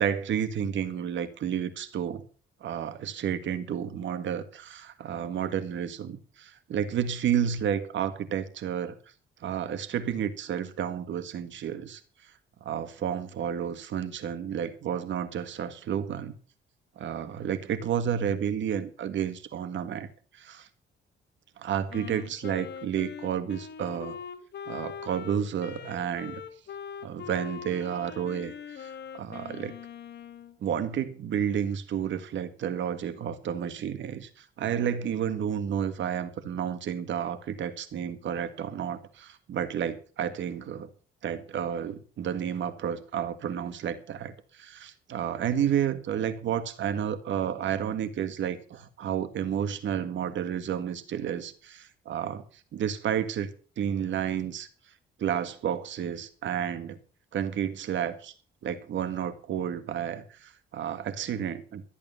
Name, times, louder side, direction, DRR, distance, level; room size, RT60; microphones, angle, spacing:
voice 1, 0.0-2.2 2.6-9.0 9.4-12.0 12.6-16.3 17.0-20.1 20.3-20.7 21.6-24.2 24.7-26.4 27.0-29.8 30.6-40.9 41.2-52.4 52.7-54.7 55.2-57.0 57.3-58.3 58.6-61.8, right 9 dB, 70° right, 1.9 m, -31 dB
Wind instrument woodwind instrument, 21.9-30.6, left 7 dB, 60° left, 1.8 m, -42 dB
13.5 x 8.5 x 7.0 m
cardioid pair, 90°, 20 cm